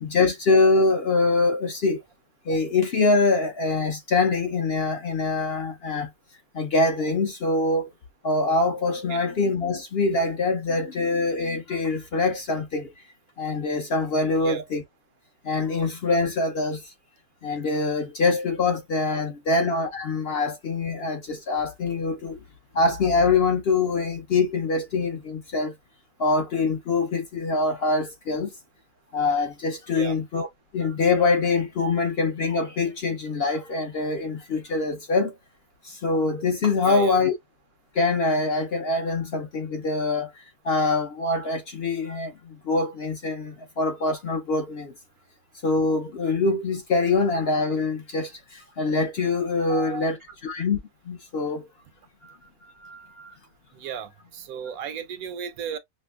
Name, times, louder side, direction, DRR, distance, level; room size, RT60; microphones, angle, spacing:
voice 1, 0.0-2.0 2.5-6.1 6.5-7.9 8.2-12.9 13.4-14.8 15.4-16.8 17.4-22.4 22.7-25.7 26.2-28.5 29.1-30.5 30.7-35.3 35.8-37.3 38.0-40.3 40.6-42.3 42.7-44.9 45.6-50.2 50.4-50.8 51.1-51.6 52.2-52.3 52.8-53.3, left 3 dB, 55° left, 0.7 m, -24 dB
voice 2, 36.8-37.2 49.7-50.1 53.7-55.8, right 8 dB, 75° right, 1.1 m, -34 dB
5.2 x 2.0 x 2.3 m
omnidirectional pair, 1.6 m